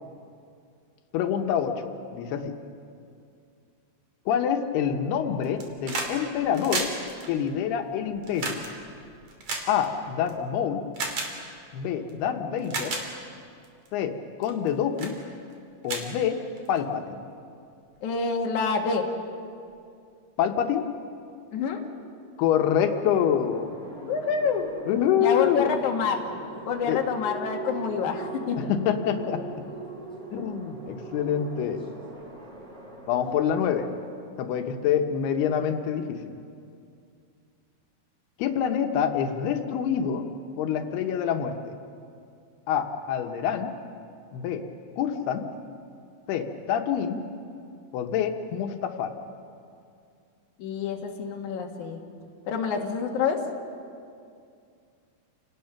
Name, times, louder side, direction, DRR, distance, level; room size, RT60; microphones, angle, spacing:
voice 1, 1.1-2.5 4.3-6.9 7.3-8.6 9.7-10.8 11.7-13.0 13.9-14.1 14.4-15.1 15.8-16.4 16.7-17.2 20.4-20.8 22.4-23.8 24.9-25.7 26.9-27.0 28.6-29.4 30.3-31.9 33.1-33.9 34.4-36.3 38.4-40.2 40.6-41.5 42.7-43.7 44.3-44.6 45.0-45.4 46.3-47.2 47.9-49.1, left 8 dB, 90° left, 5 dB, 3.1 m, -26 dB
sound 1, 5.4-6.1 6.4-10.3 10.9-11.3 12.1-12.2 12.6-13.0 13.6-13.9 14.4-14.7 15.0-15.2 15.5-15.6 15.8-16.8 17.9-18.0, right 3 dB, 50° right, 3.7 m, -33 dB
voice 2, 18.0-19.0 21.5-21.8 24.0-24.7 25.2-26.2 26.7-28.7 50.6-52.0 52.5-53.4, left 6 dB, 55° left, 1 dB, 2.9 m, -27 dB
sound 2, 22.9-34.1, right 2 dB, 15° right, 2.0 m, -41 dB
29.5 x 19.0 x 5.9 m, 2.4 s
omnidirectional pair, 4.5 m